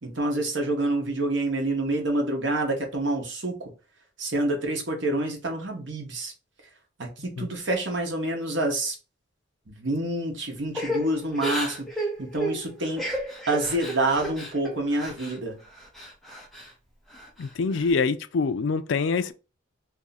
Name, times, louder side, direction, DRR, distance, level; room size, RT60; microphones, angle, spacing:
voice 1, 0.0-3.7 4.2-6.3 7.0-9.0 9.7-13.0 13.5-15.6, right 2 dB, 70° right, 1.0 m, -27 dB
Crying sobbing / Breathing, 10.7-15.4 15.7-16.7 17.1-17.9, right 1 dB, ahead, 0.6 m, -33 dB
voice 2, 17.4-19.3, left 4 dB, 70° left, 0.4 m, -25 dB
2.7 x 2.6 x 4.0 m
head